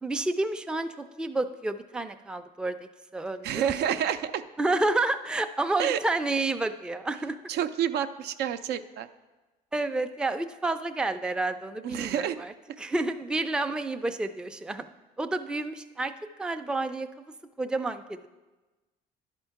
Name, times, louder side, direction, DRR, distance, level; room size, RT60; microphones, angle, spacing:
voice 1, 0.0-2.8 3.1-3.7 4.6-7.4 9.7-14.8 15.2-16.1 16.4-17.1 17.6-18.3, right 2 dB, 5° right, 7 dB, 0.4 m, -30 dB
voice 2, 3.4-4.4 5.8-6.0 7.5-9.1 11.8-12.4, right 9 dB, 75° right, 11 dB, 0.5 m, -28 dB
11.0 x 4.5 x 5.7 m, 1.2 s
cardioid pair, 110°, 17 cm